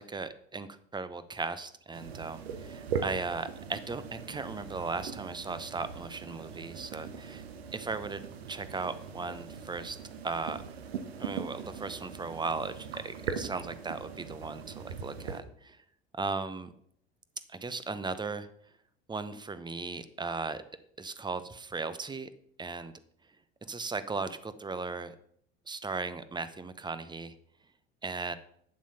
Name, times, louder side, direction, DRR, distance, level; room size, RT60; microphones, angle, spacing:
voice 1, 0.0-7.4 7.7-8.2 8.5-10.0 10.2-10.6 11.2-15.8 16.2-16.7 17.5-18.5 19.1-20.6 21.0-22.3 22.6-22.9 23.6-25.1 25.7-27.3 28.0-28.3, right 4 dB, 15° right, 13 dB, 0.8 m, -37 dB
sound 1, 1.9-15.4, right 6 dB, 75° right, 1.2 m, -40 dB
8.9 x 7.2 x 5.8 m, 0.67 s
hypercardioid pair, 75°, 31 cm